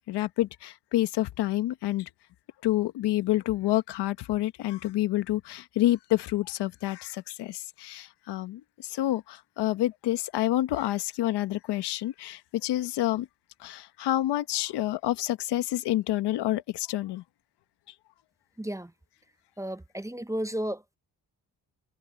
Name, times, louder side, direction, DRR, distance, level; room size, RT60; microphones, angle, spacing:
voice 1, 0.1-2.1 2.6-13.3 13.6-17.2, left 15 dB, 90° left, 1.2 m, -28 dB
voice 2, 18.6-18.9 19.6-21.0, right 1 dB, 10° right, 0.8 m, -33 dB
supercardioid pair, 60°, 39 cm